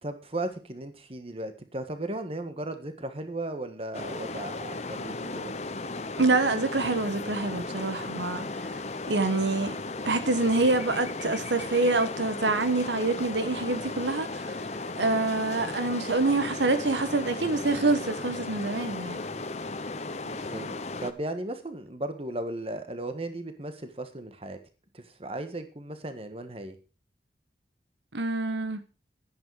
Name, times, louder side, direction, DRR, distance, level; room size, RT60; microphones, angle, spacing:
voice 1, 0.0-5.5 19.3-24.6 24.9-26.8, right 1 dB, 35° right, 1.5 m, -36 dB
sound 1, 3.9-21.1, left 3 dB, 40° left, 0.9 m, -36 dB
voice 2, 6.2-8.7 9.1-9.8 10.0-14.6 15.0-19.2 28.1-28.8, right 3 dB, 90° right, 1.3 m, -26 dB
11.0 x 10.5 x 4.9 m
head